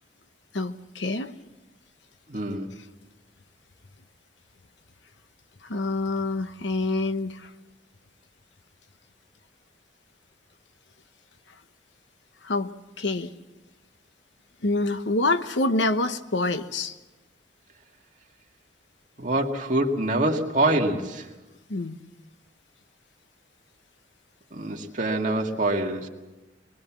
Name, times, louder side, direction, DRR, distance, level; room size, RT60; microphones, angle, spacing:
voice 1, 0.5-1.3 5.6-7.5 12.4-12.7 13.0-13.3 14.6-16.9 21.7-22.0, left 2 dB, 80° left, 10 dB, 1.0 m, -26 dB
voice 2, 2.3-2.7 19.2-21.3 24.5-26.1, right 1 dB, 40° right, 1 dB, 2.1 m, -25 dB
22.5 x 21.5 x 7.4 m, 1.1 s
head